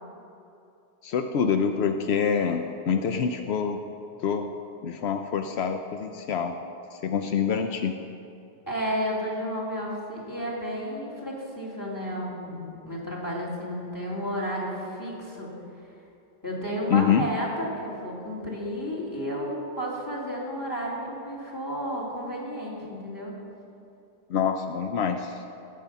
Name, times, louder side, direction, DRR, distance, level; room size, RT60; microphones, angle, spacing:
voice 1, 1.0-3.8 4.2-4.5 4.8-6.5 6.9-7.9 16.9-17.2 24.3-25.4, left 7 dB, 80° left, 6 dB, 0.9 m, -26 dB
voice 2, 8.7-15.5 16.4-23.4, equal, 20° left, -4 dB, 2.9 m, -32 dB
18.5 x 7.6 x 5.6 m, 2.7 s
omnidirectional pair, 1.1 m